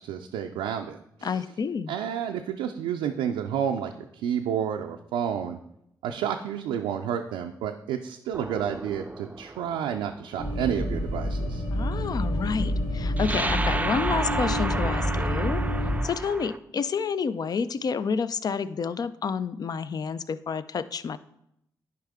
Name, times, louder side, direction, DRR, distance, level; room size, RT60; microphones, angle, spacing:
voice 1, 0.0-1.4 1.9-5.6 6.0-11.6, right 8 dB, 90° right, 3 dB, 0.4 m, -30 dB
voice 2, 1.2-1.9 11.7-15.6 16.0-21.2, left 5 dB, 50° left, 15 dB, 0.4 m, -29 dB
sound 1, 8.3-10.2 13.2-16.6, right 2 dB, 20° right, 0.5 m, -32 dB
sound 2, 10.4-16.0, equal, 90° left, 2.3 m, -28 dB
10.5 x 4.6 x 3.6 m, 0.79 s
supercardioid pair, 45°, 8 cm